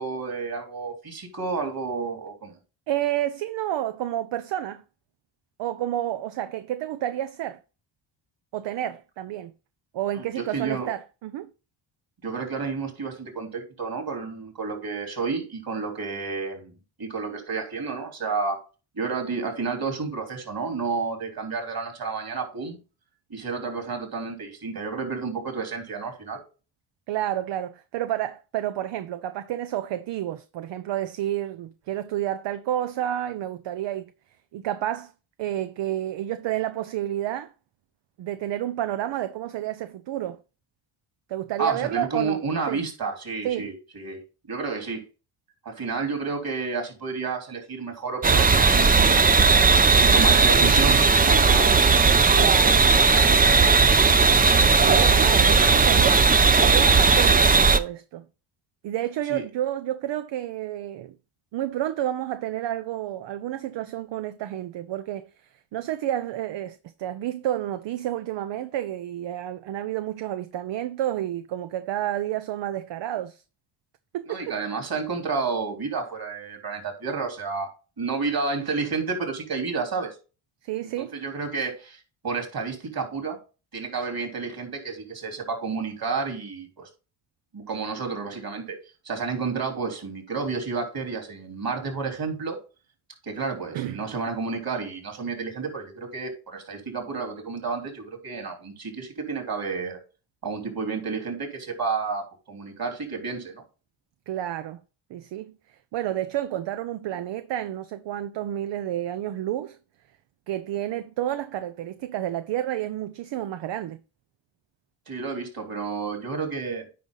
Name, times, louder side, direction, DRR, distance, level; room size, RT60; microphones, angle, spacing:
voice 1, 0.0-2.6 10.2-10.9 12.2-18.6 19.0-22.8 23.3-26.4 41.6-44.2 44.5-45.0 45.7-49.2 49.8-51.7 59.3-59.4 74.3-77.7 78.0-80.1 81.0-83.4 83.7-86.9 87.5-88.8 89.1-92.6 93.2-100.0 100.4-103.6 115.1-116.9, right 4 dB, 45° right, 3.6 m, -31 dB
voice 2, 2.9-4.8 5.6-7.6 8.5-9.5 9.9-11.5 27.1-34.1 34.5-35.1 35.4-37.5 38.2-40.4 41.3-42.4 42.7-42.8 43.4-43.7 52.3-53.7 54.8-56.3 56.6-58.2 58.8-61.1 61.5-65.3 65.7-73.4 74.1-74.6 80.6-81.2 93.7-94.0 104.3-104.8 105.1-109.8 110.5-114.0, right 12 dB, 60° right, 0.7 m, -30 dB
sound 1, 48.2-57.8, right 4 dB, 20° right, 0.6 m, -17 dB
9.5 x 5.0 x 3.9 m
supercardioid pair, 65°, 50 cm